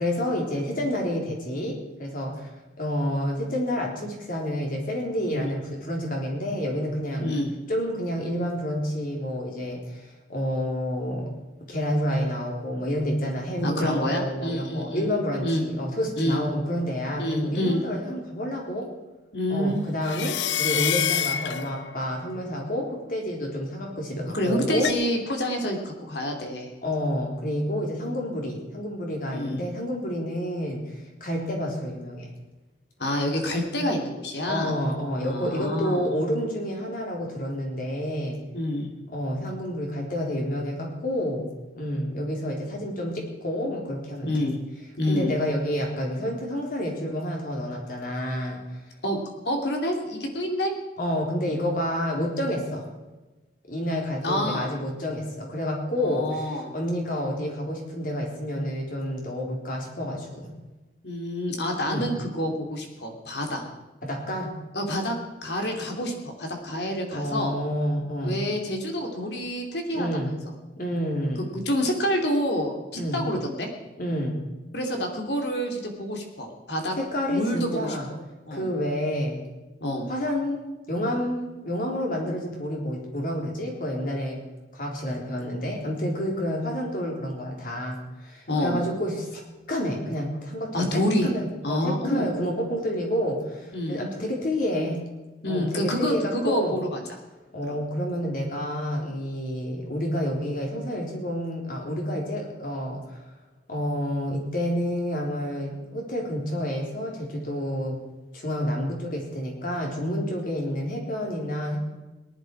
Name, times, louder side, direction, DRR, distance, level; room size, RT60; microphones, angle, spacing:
voice 1, 0.0-2.5 2.8-7.3 7.7-11.3 11.7-18.9 19.5-24.9 26.8-32.3 34.5-38.4 39.1-41.5 41.7-44.5 45.1-48.6 51.0-52.9 53.7-60.5 61.8-62.1 64.0-64.6 67.1-68.4 69.9-70.3 70.8-71.5 72.9-73.2 74.0-74.4 77.0-78.1 78.5-79.4 80.1-80.6 80.9-84.4 84.7-89.4 89.7-95.1 95.5-96.8 97.5-103.2 103.7-108.0 108.3-111.8, equal, 50° left, 0 dB, 3.9 m, -29 dB
voice 2, 13.6-15.1 15.4-15.6 16.2-16.4 17.2-17.8 19.3-19.8 24.3-26.7 29.3-29.6 33.0-34.7 35.1-36.1 38.5-38.9 44.2-44.6 45.0-45.3 49.0-50.7 54.2-54.7 56.0-56.7 61.0-63.6 64.7-67.6 68.2-70.3 71.5-73.7 74.7-77.0 77.3-78.0 78.5-78.7 79.8-80.1 88.5-88.8 90.7-91.3 91.6-92.3 93.7-94.0 95.4-97.0 97.7-97.8, equal, 70° left, 2 dB, 3.0 m, -27 dB
sound 1, 20.0-22.2 24.8-24.9, left 9 dB, 90° left, 0.6 m, -27 dB
18.5 x 11.5 x 4.8 m, 1.1 s
head